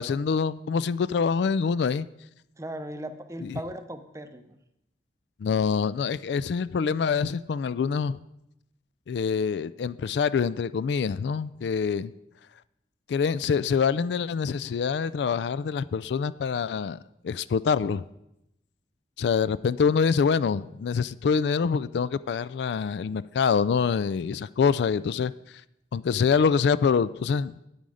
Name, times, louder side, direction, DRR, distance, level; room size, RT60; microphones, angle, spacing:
voice 1, 0.0-2.1 3.4-3.6 5.4-8.2 9.1-12.1 13.1-17.0 17.2-18.0 19.2-25.3 25.9-27.6, left 6 dB, 70° left, 17 dB, 0.3 m, -25 dB
voice 2, 2.6-4.6, right 1 dB, 15° right, 9 dB, 0.6 m, -37 dB
9.3 x 8.9 x 4.9 m, 0.84 s
head